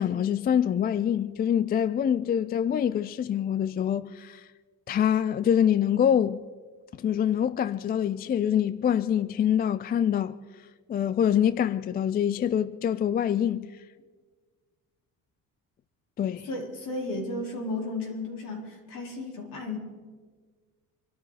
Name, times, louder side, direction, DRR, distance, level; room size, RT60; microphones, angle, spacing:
voice 1, 0.0-4.5 4.9-6.4 6.9-10.4 10.9-13.7 16.2-16.5, left 9 dB, 30° left, 0.3 m, -25 dB
voice 2, 16.5-19.8, left 2 dB, 65° left, 4.5 m, -34 dB
25.5 x 13.0 x 4.2 m
cardioid pair, 130°, 34 cm